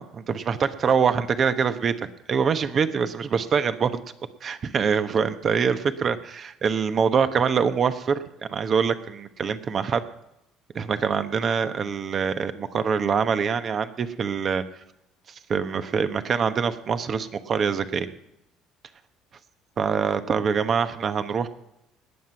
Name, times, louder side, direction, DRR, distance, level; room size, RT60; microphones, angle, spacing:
voice 1, 0.0-4.0 4.4-8.2 8.5-10.0 10.7-14.6 15.5-18.1 19.8-21.5, right 6 dB, 45° right, 10 dB, 1.2 m, -24 dB
19.5 x 7.6 x 5.8 m, 0.85 s
hypercardioid pair, 65°, 0 cm